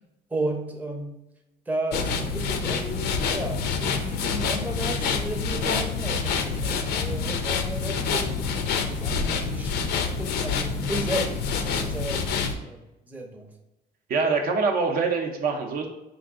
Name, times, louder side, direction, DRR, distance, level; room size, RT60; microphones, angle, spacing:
voice 1, 0.3-1.2 1.7-9.7 10.2-12.8 13.1-13.5, right 1 dB, 10° right, 1 dB, 0.6 m, -33 dB
sound 1, 1.9-12.5, left 5 dB, 75° left, 0.5 m, -27 dB
voice 2, 14.1-15.9, right 4 dB, 60° right, 3 dB, 0.6 m, -24 dB
4.0 x 2.5 x 3.5 m, 0.95 s
cardioid pair, 110°, 17 cm